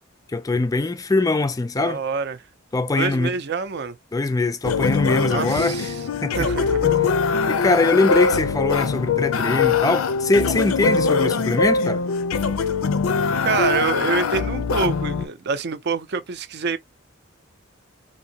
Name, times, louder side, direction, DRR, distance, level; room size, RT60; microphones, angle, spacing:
voice 1, 0.3-2.0 2.7-3.3 4.1-6.5 7.5-12.0, left 3 dB, 15° left, 0.3 m, -22 dB
voice 2, 1.8-2.4 3.0-4.0 5.3-6.0 6.3-7.1 11.2-11.3 13.4-16.8, right 5 dB, 55° right, 0.5 m, -26 dB
sound 1, 4.6-15.3, left 5 dB, 85° left, 0.5 m, -22 dB
3.5 x 2.6 x 2.8 m
head